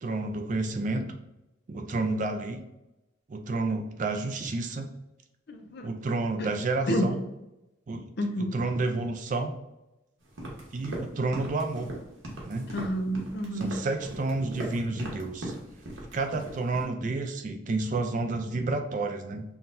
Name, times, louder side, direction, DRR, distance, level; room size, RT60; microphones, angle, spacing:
voice 1, 0.0-1.0 1.7-2.6 3.3-4.9 5.8-7.2 7.9-8.1 8.5-9.5 10.7-11.9 12.4-12.7 13.5-15.5 16.1-19.4, right 3 dB, 40° right, 5 dB, 0.3 m, -30 dB
voice 2, 5.5-5.9 6.4-6.5 6.9-7.1 8.2-8.5 12.7-13.8, equal, 55° left, 5 dB, 0.5 m, -29 dB
sound 1, 10.3-16.8, right 1 dB, 75° right, 1.1 m, -39 dB
5.7 x 2.2 x 2.6 m, 0.94 s
head